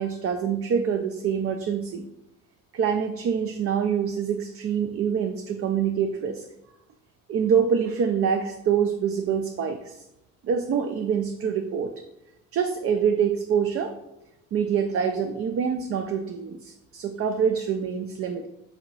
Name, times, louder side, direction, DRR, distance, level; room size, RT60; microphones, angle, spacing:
voice 1, 0.0-2.1 2.7-6.4 7.3-9.9 10.4-11.9 12.5-13.9 14.5-18.5, right 7 dB, 50° right, 6 dB, 0.4 m, -25 dB
3.8 x 2.8 x 4.5 m, 0.88 s
cardioid pair, 90°, 30 cm